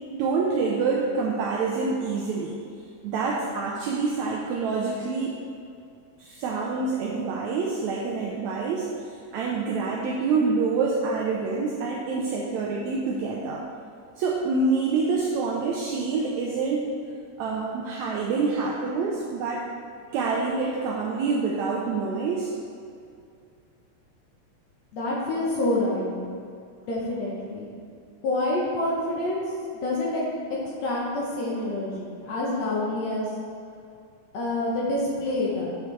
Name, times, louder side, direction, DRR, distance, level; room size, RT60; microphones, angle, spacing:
voice 1, 0.1-2.6 3.0-5.3 6.2-8.9 9.3-13.6 14.2-16.9 17.4-19.6 20.1-22.5, right 4 dB, 85° right, -2 dB, 1.6 m, -26 dB
voice 2, 24.9-26.1 26.9-27.7 28.2-29.4 29.8-30.2 30.8-33.3 34.3-35.7, left 1 dB, 70° left, -4 dB, 1.8 m, -27 dB
7.6 x 5.7 x 3.2 m, 2.4 s
omnidirectional pair, 3.8 m